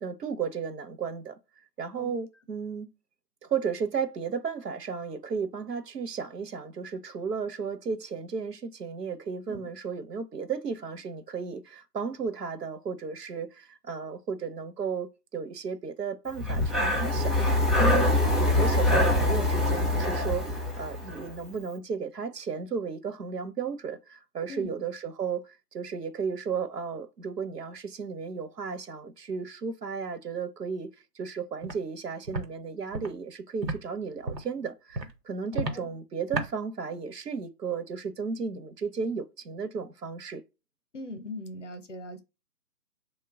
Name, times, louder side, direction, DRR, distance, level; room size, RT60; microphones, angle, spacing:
voice 1, 0.0-1.4 1.8-2.9 3.4-17.4 17.8-18.1 18.4-30.9 31.1-40.4, right 6 dB, 70° right, 0.8 m, -34 dB
Breathing, 16.4-21.3, left 2 dB, ahead, 0.4 m, -24 dB
Walk footsteps, 31.6-31.8 32.3-32.5 32.9-33.1 33.6-33.8 34.2-34.5 34.9-35.1 35.5-35.8 36.3-36.5, right 2 dB, 90° right, 1.0 m, -31 dB
voice 2, 35.5-36.0 40.9-42.2, left 1 dB, 50° left, 0.6 m, -40 dB
2.7 x 2.2 x 3.5 m
figure-of-eight pair, 155°, 49 cm